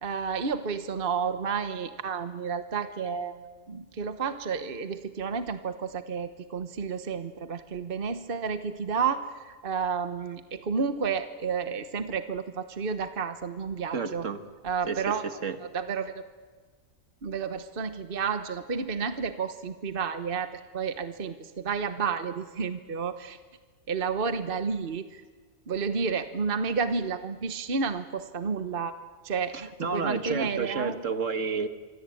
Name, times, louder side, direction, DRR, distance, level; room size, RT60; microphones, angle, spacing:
voice 1, 0.0-3.4 3.7-14.3 14.6-15.3 15.7-16.1 17.2-23.4 23.9-25.2 25.7-29.0 29.2-31.0, right 5 dB, 45° right, 9 dB, 1.3 m, -31 dB
voice 2, 13.9-14.4 14.9-15.0 15.4-15.6 29.5-31.7, right 5 dB, 65° right, 9 dB, 1.9 m, -30 dB
26.0 x 25.0 x 8.6 m, 1.4 s
omnidirectional pair, 1.4 m